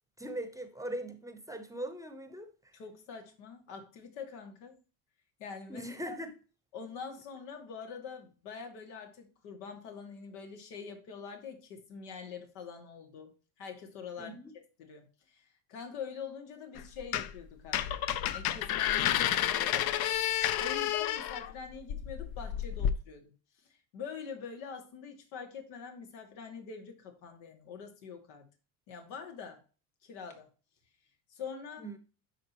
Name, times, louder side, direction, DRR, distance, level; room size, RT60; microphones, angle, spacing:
voice 1, 0.2-2.5 5.7-6.3 14.2-14.5 31.8-32.0, right 1 dB, 10° right, 0.8 m, -40 dB
voice 2, 2.7-4.8 5.4-6.2 6.7-13.3 13.6-17.8 18.3-19.9 20.5-23.3 23.6-28.5 28.9-29.6 30.0-30.5 31.3-31.9, left 6 dB, 90° left, 2.2 m, -45 dB
sound 1, 16.8-17.4 17.7-22.9, left 11 dB, 60° left, 0.7 m, -30 dB
11.5 x 3.9 x 3.0 m
cardioid pair, 115°, 43 cm